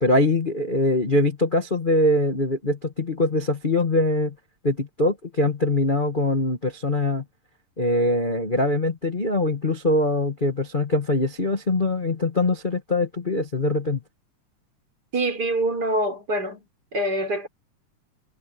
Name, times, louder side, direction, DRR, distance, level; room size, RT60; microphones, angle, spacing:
voice 1, 0.0-4.3 4.6-7.2 7.8-14.0, left 2 dB, 60° left, 0.5 m, -23 dB
voice 2, 15.1-16.6 16.9-17.5, right 1 dB, 30° right, 5.3 m, -25 dB
omnidirectional pair, 3.7 m